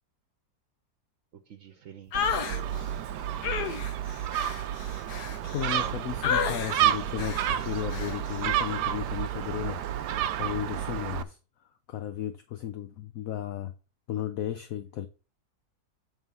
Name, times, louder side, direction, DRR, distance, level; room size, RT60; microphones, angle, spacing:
voice 1, 1.5-3.0 5.3-5.9 6.4-6.5, right 8 dB, 60° right, 1.1 m, -47 dB
sound 1, 2.1-2.6 3.4-5.9 6.2-6.8 7.2-7.5 7.9-8.2, left 7 dB, 80° left, 1.5 m, -31 dB
Gull seagull, 2.1-11.2, right 11 dB, 85° right, 1.2 m, -30 dB
voice 2, 5.1-9.8 10.4-11.4 11.9-13.7 14.1-15.1, left 11 dB, 65° left, 1.0 m, -34 dB
8.7 x 3.8 x 5.5 m
omnidirectional pair, 1.7 m